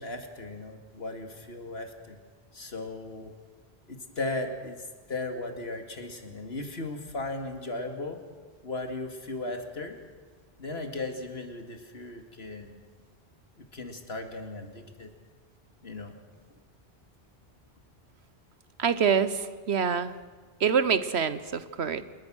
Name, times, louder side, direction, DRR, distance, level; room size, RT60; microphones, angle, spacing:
voice 1, 0.0-2.2 2.5-3.3 3.9-8.2 8.6-10.0 10.6-12.8 13.6-15.1 15.8-16.1, left 2 dB, 75° left, 5 dB, 2.6 m, -37 dB
voice 2, 18.8-20.1 20.6-22.0, right 6 dB, 85° right, 13 dB, 1.4 m, -26 dB
28.5 x 21.5 x 6.4 m, 1.5 s
omnidirectional pair, 1.1 m